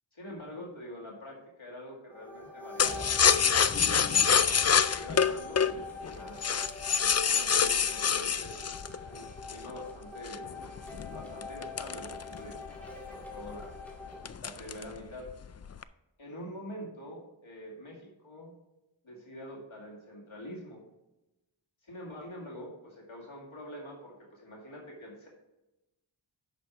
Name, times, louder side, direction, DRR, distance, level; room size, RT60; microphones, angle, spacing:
voice 1, 0.1-3.2 3.9-6.4 7.0-10.7 11.1-13.8 14.4-15.3 16.2-18.5 19.0-20.8 21.8-25.3, left 1 dB, 80° left, -3 dB, 2.2 m, -45 dB
sound 1, 2.1-14.3, left 2 dB, 5° left, 2.2 m, -44 dB
sound 2, 2.8-9.7 10.3-12.7 13.1-13.2 13.5-13.8 14.3-15.0 15.3-15.8, left 7 dB, 35° left, 0.4 m, -26 dB
9.1 x 6.2 x 4.6 m, 0.98 s
wide cardioid pair, 50°, 47 cm